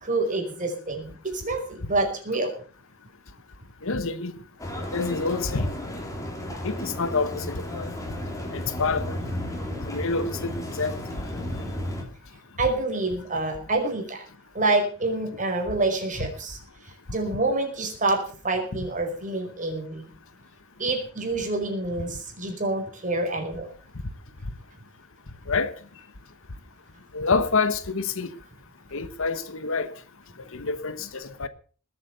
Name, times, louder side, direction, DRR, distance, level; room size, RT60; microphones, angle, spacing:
voice 1, 0.0-2.6 12.6-14.2 14.5-16.6 17.1-20.1 20.8-23.7, right 2 dB, 35° right, 5.1 m, -27 dB
voice 2, 3.8-4.3 4.9-5.7 6.6-7.9 8.5-9.2 9.9-11.0 25.5-25.7 27.1-28.3 28.9-29.9 30.5-31.5, left 4 dB, 60° left, 1.2 m, -27 dB
sound 1, 4.6-12.0, left 1 dB, 15° left, 3.4 m, -33 dB
20.0 x 8.4 x 6.9 m
head